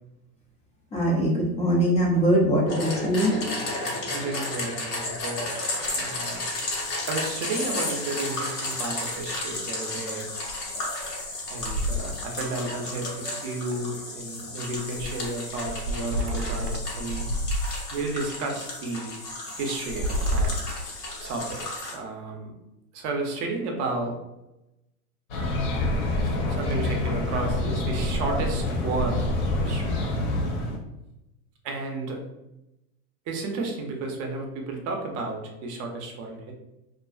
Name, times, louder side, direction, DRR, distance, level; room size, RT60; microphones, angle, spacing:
voice 1, 0.9-3.3, equal, 15° left, -4 dB, 0.4 m, -22 dB
sound 1, 2.7-22.0, left 2 dB, 90° left, 1.0 m, -33 dB
voice 2, 4.1-6.4 7.1-10.3 11.5-17.3 17.9-19.1 19.5-20.5 21.2-22.5 22.9-24.2 26.5-29.9 31.6-32.2 33.3-36.5, right 2 dB, 35° right, 2 dB, 0.6 m, -32 dB
sound 2, 5.2-5.3 5.5-6.0 6.3-6.4 6.7-6.8 8.2-8.8 9.2-9.3 10.4-10.5 10.9-12.5 12.9-13.9 14.7-18.2 18.8-18.9 19.7-21.6, equal, 80° right, 0.5 m, -31 dB
sound 3, 25.3-30.8, left 1 dB, 50° left, 0.8 m, -26 dB
2.5 x 2.3 x 2.3 m, 0.93 s
hypercardioid pair, 100°, 46 cm